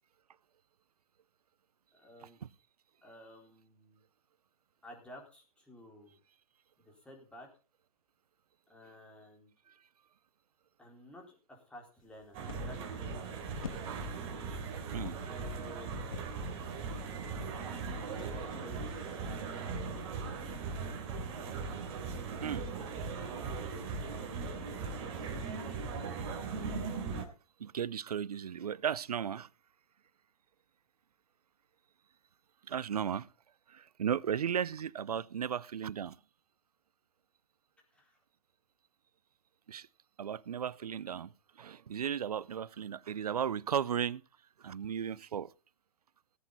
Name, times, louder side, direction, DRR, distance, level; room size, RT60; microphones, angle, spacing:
voice 1, 1.9-2.4 3.0-4.0 4.8-6.2 6.8-7.5 8.7-9.5 10.8-13.2 13.4-13.5 15.2-16.0 17.8-19.5 37.9-38.2, left 1 dB, 5° left, 4.4 m, -53 dB
sound 1, 12.0-25.6, left 7 dB, 65° left, 2.7 m, -53 dB
sound 2, 12.3-27.3, right 4 dB, 35° right, 3.3 m, -39 dB
voice 2, 14.9-15.8 22.4-22.7 23.9-24.0 27.6-29.5 32.7-33.3 33.7-36.2 39.7-39.9 40.2-41.3 41.6-44.2 44.6-45.5, right 8 dB, 85° right, 0.6 m, -35 dB
18.5 x 8.3 x 4.1 m
hypercardioid pair, 130°, 19 cm